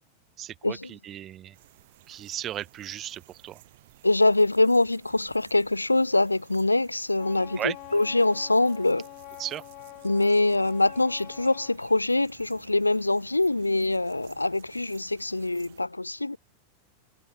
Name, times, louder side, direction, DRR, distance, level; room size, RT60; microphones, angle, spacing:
voice 1, 0.4-1.6 2.1-3.6 7.6-7.7 9.4-9.6, right 11 dB, 30° right, 2.5 m, -35 dB
sound 1, 1.5-15.9, right 17 dB, 55° right, 6.8 m, -55 dB
voice 2, 4.0-9.1 10.0-16.4, left 2 dB, 85° left, 1.3 m, -24 dB
Wind instrument woodwind instrument, 7.2-11.8, left 32 dB, 45° left, 4.8 m, -45 dB
figure-of-eight pair, 90°, 0 cm